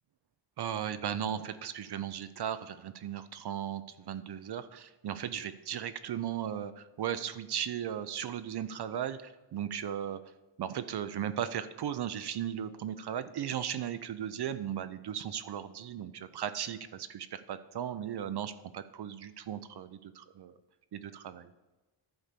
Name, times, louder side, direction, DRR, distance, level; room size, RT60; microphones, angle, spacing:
voice 1, 0.6-10.2 10.6-20.5 20.9-21.5, right 9 dB, 50° right, 12 dB, 0.6 m, -36 dB
11.5 x 4.1 x 6.7 m, 1.2 s
cardioid pair, 85°, 50 cm